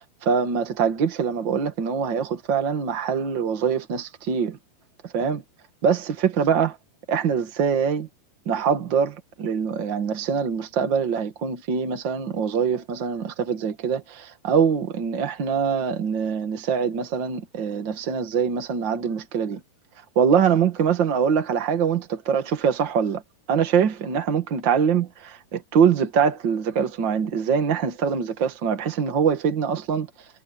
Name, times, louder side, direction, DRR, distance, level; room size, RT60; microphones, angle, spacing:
voice 1, 0.2-4.6 5.0-5.4 5.8-6.8 7.1-8.1 8.4-19.6 20.1-23.2 23.5-30.1, right 7 dB, 75° right, 1.0 m, -23 dB
omnidirectional pair, 4.9 m